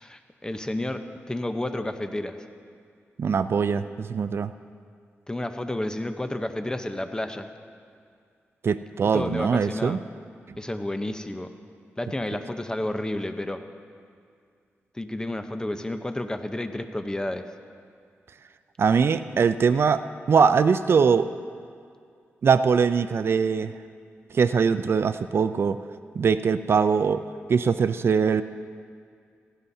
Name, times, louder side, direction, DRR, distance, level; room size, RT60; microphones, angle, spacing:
voice 1, 0.0-2.4 5.3-7.5 9.1-10.0 10.6-11.5 12.0-13.6 14.9-17.5, left 1 dB, 15° left, 7 dB, 0.8 m, -31 dB
voice 2, 3.2-4.5 8.6-10.0 18.8-21.3 22.4-23.7 24.3-25.8 26.2-27.2 27.5-28.4, right 6 dB, 60° right, 12 dB, 0.4 m, -22 dB
17.0 x 16.0 x 2.7 m, 2.2 s
cardioid pair, 75°, 5 cm